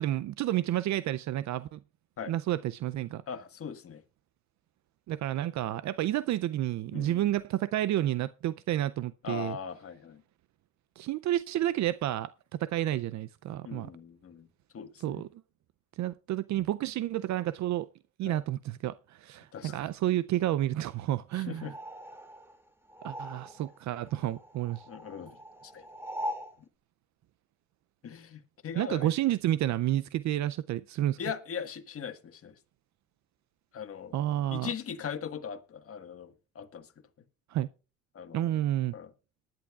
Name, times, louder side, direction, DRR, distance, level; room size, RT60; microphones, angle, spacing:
voice 1, 0.0-1.8 2.3-3.2 5.1-9.6 11.0-13.9 15.0-15.3 16.0-17.9 18.2-21.7 23.0-24.8 28.8-31.2 34.1-34.7 37.5-37.7 38.3-38.9, right 13 dB, 70° right, 0.5 m, -30 dB
voice 2, 3.3-4.0 6.9-7.3 9.2-10.2 13.6-14.5 14.7-15.2 18.2-18.4 19.5-19.8 21.3-21.7 24.9-25.4 25.6-25.8 28.0-29.1 31.2-32.5 33.7-34.2 34.5-36.9 38.1-38.5 38.9-39.1, left 7 dB, 50° left, 1.5 m, -40 dB
sound 1, 21.6-23.8 24.1-26.6, equal, 10° right, 2.3 m, -41 dB
20.0 x 10.5 x 2.3 m
cardioid pair, 90°, 30 cm